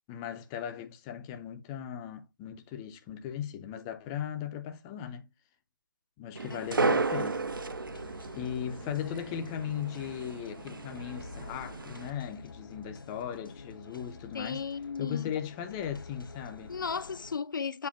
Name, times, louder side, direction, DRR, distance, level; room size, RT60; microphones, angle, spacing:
voice 1, 0.1-5.3 6.2-7.4 8.3-14.7 15.0-16.8, left 9 dB, 10° left, 0.4 m, -38 dB
sound 1, 6.4-12.1, right 3 dB, 75° right, 0.9 m, -34 dB
sound 2, 6.6-17.4, left 3 dB, 90° left, 1.2 m, -49 dB
voice 2, 14.3-15.3 16.7-17.9, left 5 dB, 65° left, 0.4 m, -35 dB
7.4 x 2.5 x 5.1 m
figure-of-eight pair, 160°, 11 cm